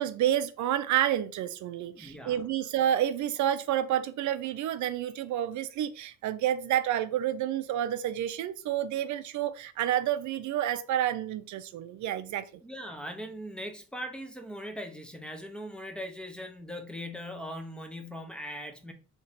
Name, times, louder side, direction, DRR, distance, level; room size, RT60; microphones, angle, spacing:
voice 1, 0.0-12.5, right 11 dB, 70° right, 0.5 m, -29 dB
voice 2, 1.9-2.4 12.6-18.9, equal, 5° left, 0.8 m, -40 dB
3.2 x 2.9 x 4.0 m
cardioid pair, 90°, 30 cm